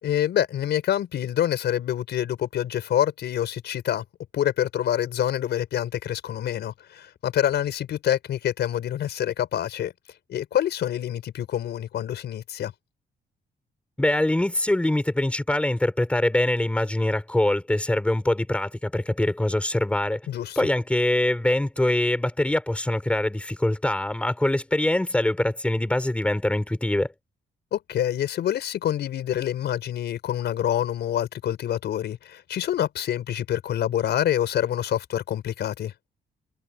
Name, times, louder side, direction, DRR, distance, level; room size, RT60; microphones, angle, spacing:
voice 1, 0.0-4.0 4.3-9.9 10.3-12.7 20.3-20.6 27.7-35.9, left 11 dB, 75° left, 5.4 m, -26 dB
voice 2, 14.0-20.2 20.6-27.1, left 1 dB, 5° left, 4.0 m, -23 dB
wide cardioid pair, 160°, 18 cm